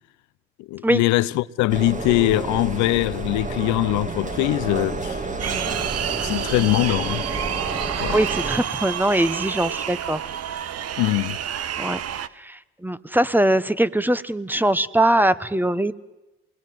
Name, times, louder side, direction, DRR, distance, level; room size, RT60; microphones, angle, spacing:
voice 1, 0.7-5.2 6.2-7.2 8.0-8.2 11.0-11.4, left 18 dB, 75° left, 0.9 m, -22 dB
sound 1, 1.7-8.6, right 3 dB, 25° right, 2.3 m, -30 dB
sound 2, 5.4-12.3, right 9 dB, 55° right, 1.3 m, -29 dB
voice 2, 8.1-10.2 11.8-12.0 12.4-15.9, right 1 dB, 5° right, 1.3 m, -21 dB
28.0 x 21.0 x 7.9 m
hypercardioid pair, 60°, 29 cm